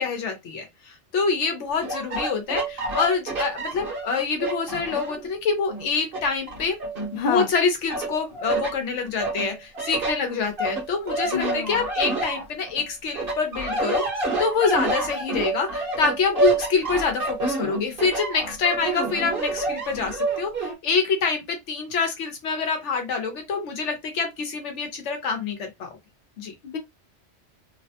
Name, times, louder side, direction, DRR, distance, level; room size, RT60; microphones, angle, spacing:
voice 1, 0.0-6.8 7.3-26.0 26.4-26.5, left 5 dB, 85° left, 1.0 m, -26 dB
sound 1, 1.8-5.3 5.7-7.5 7.9-8.7 9.2-12.8 13.1-20.7, right 2 dB, 50° right, 1.3 m, -28 dB
voice 2, 7.1-7.5 11.2-11.9 26.6-26.8, left 6 dB, 60° left, 0.7 m, -28 dB
3.1 x 2.1 x 2.7 m
omnidirectional pair, 1.2 m